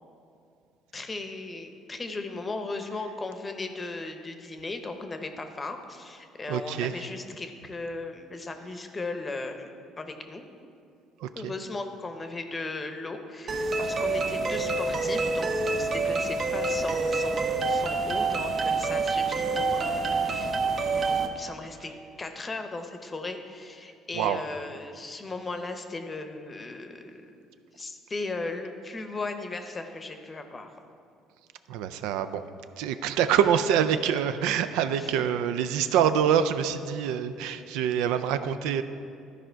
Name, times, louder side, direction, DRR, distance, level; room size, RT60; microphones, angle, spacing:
voice 1, 0.9-9.7 10.0-10.4 11.3-20.5 20.8-21.9 22.2-27.3 27.7-30.7 35.0-35.1, left 3 dB, 20° left, 7 dB, 0.8 m, -37 dB
voice 2, 6.5-6.9 11.2-11.5 24.1-24.4 31.7-32.4 32.8-38.8, right 8 dB, 85° right, 10 dB, 0.4 m, -25 dB
sound 1, 13.5-21.3, right 3 dB, 45° right, 0.7 m, -27 dB
13.0 x 4.9 x 4.5 m, 2.5 s
cardioid pair, 115°, 0 cm